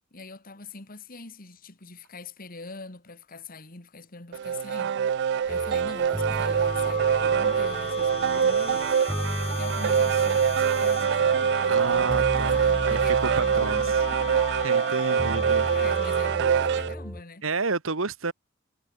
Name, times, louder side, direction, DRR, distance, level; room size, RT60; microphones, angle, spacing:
voice 1, 0.1-14.5 15.0-17.5, left 3 dB, 45° left, 2.5 m, -44 dB
sound 1, 4.3-16.9, right 7 dB, 55° right, 0.3 m, -24 dB
sound 2, 5.5-17.2, equal, ahead, 2.3 m, -35 dB
sound 3, 6.2-16.6, left 6 dB, 30° left, 1.1 m, -38 dB
voice 2, 11.7-13.9 14.5-15.7 17.4-18.3, right 4 dB, 80° right, 1.6 m, -30 dB
head